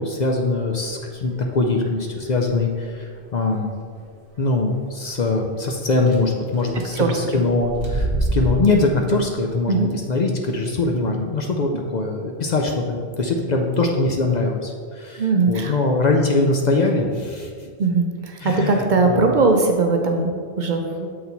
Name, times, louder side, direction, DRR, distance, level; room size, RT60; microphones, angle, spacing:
voice 1, 0.0-3.7 4.4-17.5 18.4-19.3, left 3 dB, 50° left, 2 dB, 0.6 m, -22 dB
sound 1, 2.2-2.5 3.2-3.3 3.6-3.7 4.0-4.1 6.1-6.2 6.5-6.8 7.5-8.8, right 1 dB, 35° right, 1.0 m, -25 dB
voice 2, 6.9-7.4 9.7-9.9 15.2-15.7 17.8-21.1, right 3 dB, 55° right, 3 dB, 0.7 m, -20 dB
7.5 x 4.3 x 4.0 m, 2.1 s
omnidirectional pair, 1.1 m